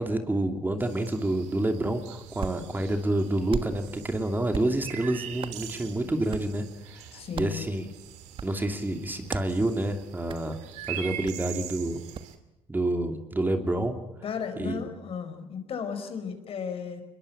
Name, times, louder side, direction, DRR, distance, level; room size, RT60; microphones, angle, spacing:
voice 1, 0.0-7.9 8.4-10.6 10.9-12.0 12.7-14.0 14.6-14.9, right 1 dB, 15° right, 5 dB, 2.8 m, -28 dB
sound 1, 0.8-12.4, right 11 dB, 85° right, 2.6 m, -43 dB
Hands, 2.0-12.4, right 7 dB, 45° right, 1.4 m, -42 dB
voice 2, 7.1-7.6 14.2-17.0, left 6 dB, 55° left, 8 dB, 4.8 m, -34 dB
22.5 x 21.5 x 8.7 m, 0.93 s
supercardioid pair, 80°, 12 cm